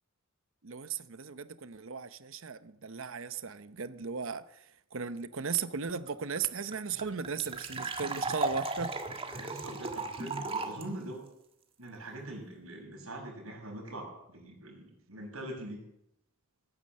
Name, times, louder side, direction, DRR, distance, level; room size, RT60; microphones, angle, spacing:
voice 1, 0.6-4.6 4.9-8.9, right 6 dB, 65° right, 0.8 m, -36 dB
sound 1, 6.1-6.2 6.3-6.4 6.7-10.8, right 3 dB, 25° right, 1.7 m, -36 dB
voice 2, 9.3-11.3 11.8-15.8, right 1 dB, 80° right, 6.6 m, -43 dB
17.5 x 9.8 x 7.5 m
head